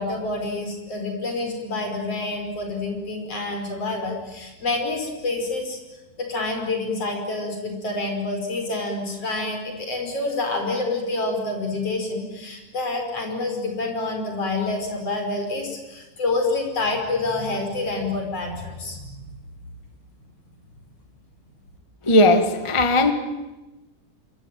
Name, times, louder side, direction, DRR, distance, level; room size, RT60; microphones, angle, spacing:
voice 1, 0.0-5.8 6.2-19.2, left 2 dB, 45° left, 3 dB, 6.3 m, -27 dB
voice 2, 22.0-23.1, left 2 dB, 25° left, 8 dB, 0.7 m, -17 dB
27.0 x 23.0 x 9.4 m, 1.1 s
omnidirectional pair, 3.7 m